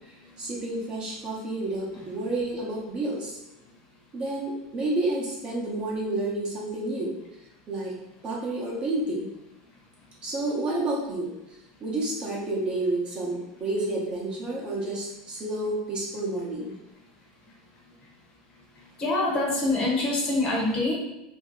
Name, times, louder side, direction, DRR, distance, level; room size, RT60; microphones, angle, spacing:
voice 1, 0.4-3.3 4.1-7.1 7.7-7.9 8.2-9.3 10.2-11.3 11.8-16.7, right 2 dB, 30° right, -4 dB, 0.9 m, -30 dB
voice 2, 19.0-20.9, left 2 dB, 30° left, -2 dB, 0.9 m, -25 dB
2.6 x 2.2 x 3.7 m, 0.92 s
supercardioid pair, 125°, 3 cm